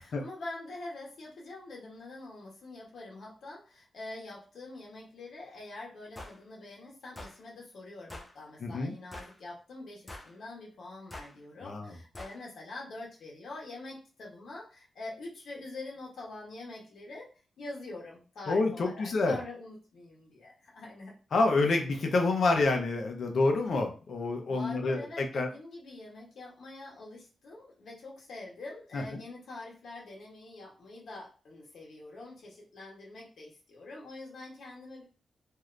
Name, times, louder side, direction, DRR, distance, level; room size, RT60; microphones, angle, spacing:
voice 1, 0.0-17.3 17.6-21.1 24.5-35.0, left 2 dB, 80° left, -3 dB, 1.1 m, -45 dB
sound 1, 6.2-6.4 7.2-7.4 8.1-8.3 9.1-9.4 10.1-10.4 11.1-11.3 12.1-12.4, left 1 dB, 20° left, 0.6 m, -45 dB
voice 2, 8.6-8.9 11.6-11.9 18.5-19.4 21.3-25.5 28.9-29.0, left 3 dB, 60° left, 3 dB, 0.7 m, -28 dB
2.7 x 2.5 x 3.2 m, 0.35 s
wide cardioid pair, 120°, 0 cm